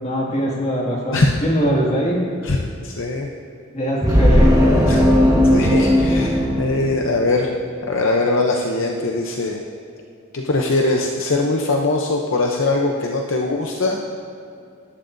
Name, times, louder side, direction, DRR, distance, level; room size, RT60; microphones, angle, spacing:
voice 1, 0.0-2.2 3.7-4.7, equal, 30° left, -3 dB, 2.1 m, -22 dB
voice 2, 2.8-3.3 4.9-5.0 5.5-7.5 7.8-9.6 10.3-14.0, left 2 dB, 60° left, 1 dB, 0.7 m, -21 dB
sound 1, 4.0-7.5, equal, 15° right, 1.4 m, -16 dB
18.5 x 11.5 x 2.7 m, 2.5 s
head